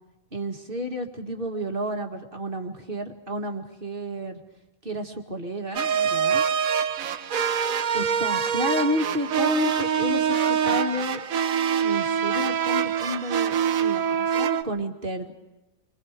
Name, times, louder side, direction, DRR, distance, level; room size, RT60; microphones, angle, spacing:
voice 1, 0.3-4.4 4.8-6.4 7.9-11.2 11.8-15.3, equal, 40° right, 3 dB, 2.1 m, -31 dB
sound 1, 5.8-14.6, right 7 dB, 75° right, 1.3 m, -24 dB
29.5 x 24.5 x 5.1 m, 1.1 s
omnidirectional pair, 1.5 m